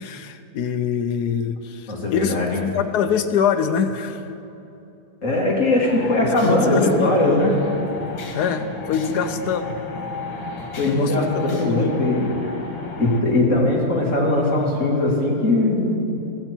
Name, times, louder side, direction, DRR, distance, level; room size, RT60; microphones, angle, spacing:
voice 1, 0.0-2.4 2.7-4.3 6.4-7.1 8.3-9.8 10.8-11.9, left 7 dB, 65° left, 9 dB, 1.1 m, -24 dB
voice 2, 1.9-2.6 5.2-7.5 9.1-9.2 10.8-12.3 13.0-16.0, left 2 dB, 40° left, -3 dB, 2.6 m, -20 dB
sound 1, 5.8-13.2, left 3 dB, 90° left, 2.2 m, -33 dB
16.0 x 14.5 x 4.5 m, 2.8 s
omnidirectional pair, 2.1 m